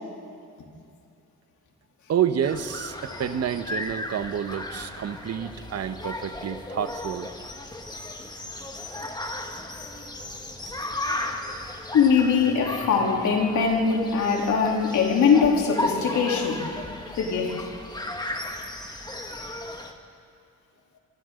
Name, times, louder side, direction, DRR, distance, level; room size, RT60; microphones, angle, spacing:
voice 1, 2.1-7.3, right 9 dB, 55° right, 10 dB, 1.2 m, -29 dB
sound 1, 2.4-19.9, left 1 dB, 15° left, 2.1 m, -35 dB
voice 2, 11.9-16.7 17.1-17.7, left 5 dB, 70° left, 0 dB, 3.5 m, -22 dB
27.5 x 25.0 x 3.9 m, 2.5 s
cardioid pair, 90°, 30 cm